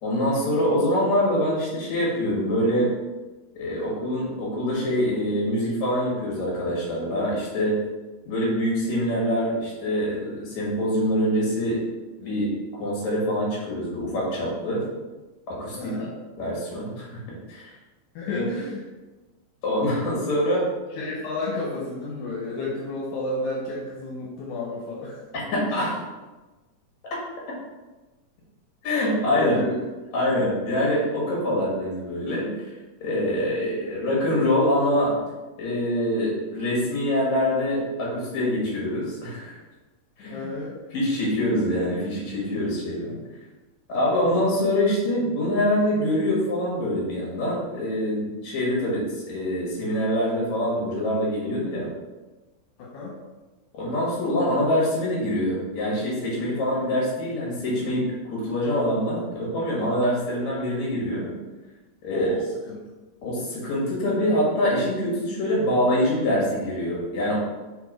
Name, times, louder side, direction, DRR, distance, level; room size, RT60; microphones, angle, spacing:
voice 1, 0.0-2.9 3.5-7.7 8.3-11.8 12.2-14.8 15.5-15.9 16.4-17.2 17.5-17.7 18.2-18.4 19.6-20.7 25.3-25.9 28.8-29.6 30.1-32.7 33.0-35.1 35.6-39.6 40.2-40.4 40.9-43.2 43.9-51.9 53.7-61.3 62.0-62.3 63.2-67.4, left 1 dB, 65° left, -4 dB, 3.1 m, -25 dB
voice 2, 15.8-16.1 18.2-18.8 21.0-25.2 25.5-25.9 29.3-29.8 40.3-40.8 44.1-44.4 52.8-53.1 62.1-62.8, left 2 dB, 85° left, -4 dB, 2.5 m, -31 dB
5.9 x 3.5 x 4.9 m, 1.2 s
omnidirectional pair, 3.6 m